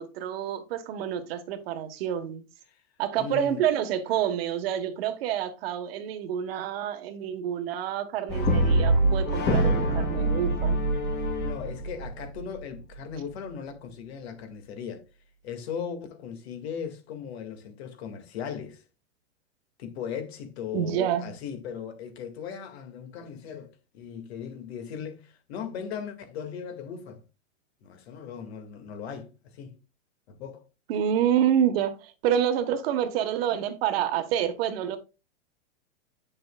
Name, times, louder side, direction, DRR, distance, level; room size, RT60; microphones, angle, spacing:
voice 1, 0.0-2.4 3.0-10.8 20.7-21.3 30.9-35.0, right 9 dB, 50° right, 1.3 m, -28 dB
voice 2, 3.2-3.7 11.2-15.0 15.4-18.8 19.8-27.2 27.8-29.8 30.3-30.6, left 7 dB, 55° left, 2.0 m, -38 dB
Brass instrument, 8.3-12.6, right 1 dB, 30° left, 2.6 m, -25 dB
8.5 x 6.7 x 2.3 m
hypercardioid pair, 145°, 38 cm